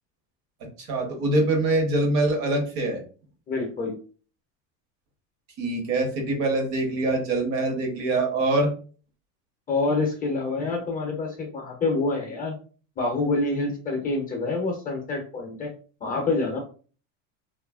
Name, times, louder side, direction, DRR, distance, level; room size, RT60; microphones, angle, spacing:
voice 1, 0.8-3.0 5.6-8.7, right 2 dB, 60° right, 3 dB, 1.0 m, -24 dB
voice 2, 3.5-4.0 9.7-12.5 13.0-15.7 16.0-16.6, left 3 dB, 20° left, 1 dB, 0.5 m, -27 dB
2.7 x 2.4 x 2.3 m, 0.39 s
cardioid pair, 140°, 38 cm